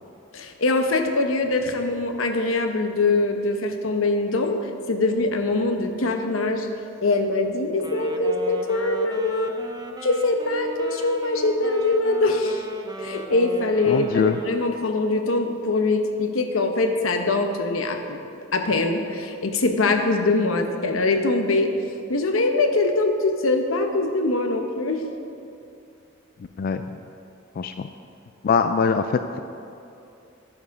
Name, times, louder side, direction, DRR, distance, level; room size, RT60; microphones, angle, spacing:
voice 1, 0.3-4.6 4.9-6.7 7.0-9.6 10.0-12.7 13.0-18.2 18.5-21.7 22.1-25.0, left 2 dB, 90° left, 5 dB, 0.9 m, -23 dB
Wind instrument woodwind instrument, 7.7-14.9, right 3 dB, 20° right, 0.6 m, -37 dB
voice 2, 13.9-14.4 26.6-26.8 27.6-27.9 28.4-29.4, left 5 dB, 50° left, 8 dB, 0.3 m, -22 dB
10.5 x 7.1 x 5.2 m, 2.6 s
head